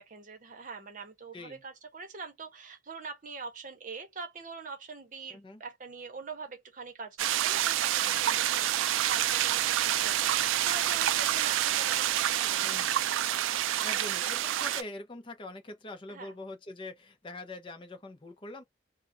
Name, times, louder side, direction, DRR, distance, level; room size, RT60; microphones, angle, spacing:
voice 1, 0.0-12.7 13.9-14.1 16.1-16.4, right 4 dB, 45° right, 0.7 m, -44 dB
voice 2, 5.3-5.6 12.6-13.0 13.8-18.6, left 2 dB, 25° left, 0.5 m, -43 dB
sound 1, 7.2-14.8, right 12 dB, 90° right, 0.3 m, -28 dB
2.4 x 2.1 x 2.5 m
head